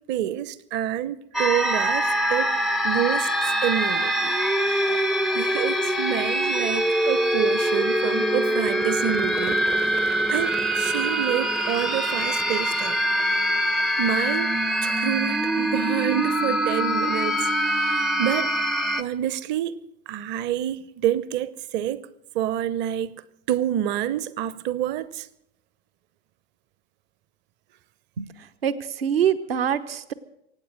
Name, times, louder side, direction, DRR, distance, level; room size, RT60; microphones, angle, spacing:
voice 1, 0.1-2.5 2.8-4.3 5.3-9.6 10.0-13.0 14.0-17.4 17.7-18.6 19.0-19.8 20.1-22.0 22.3-25.3, right 11 dB, 35° right, 0.8 m, -28 dB
sound 1, 1.3-19.0, right 1 dB, ahead, 0.5 m, -24 dB
voice 2, 28.6-30.1, right 8 dB, 70° right, 1.1 m, -24 dB
24.0 x 9.2 x 6.5 m
figure-of-eight pair, 80°, 31 cm